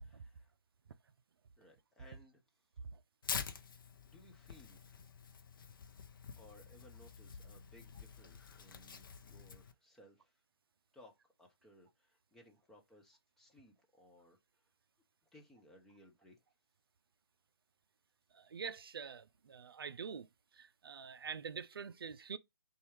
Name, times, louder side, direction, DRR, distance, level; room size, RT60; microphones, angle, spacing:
voice 1, 0.0-0.5 1.6-2.4 4.0-5.0 6.4-10.4 10.9-11.1 11.4-14.4 15.3-16.4, equal, 5° left, 0.3 m, -62 dB
Tearing, 3.2-9.7, left 6 dB, 55° left, 0.6 m, -47 dB
voice 2, 18.5-20.3 20.6-22.4, right 6 dB, 70° right, 0.4 m, -45 dB
4.1 x 2.3 x 3.1 m
figure-of-eight pair, 145°, 13 cm